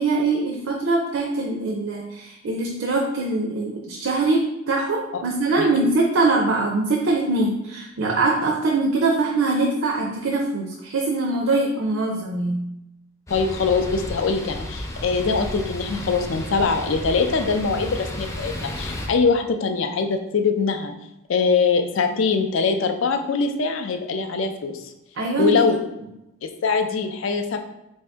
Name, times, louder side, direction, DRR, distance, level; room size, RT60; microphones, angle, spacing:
voice 1, 0.0-12.6 25.2-25.6, right 3 dB, 80° right, 0 dB, 0.5 m, -23 dB
voice 2, 13.3-20.9 21.3-24.8 25.4-25.8 26.4-27.6, left 4 dB, 75° left, 6 dB, 0.4 m, -22 dB
sound 1, 13.3-19.1, left 1 dB, 15° left, 0.4 m, -33 dB
4.1 x 2.7 x 3.4 m, 0.88 s
head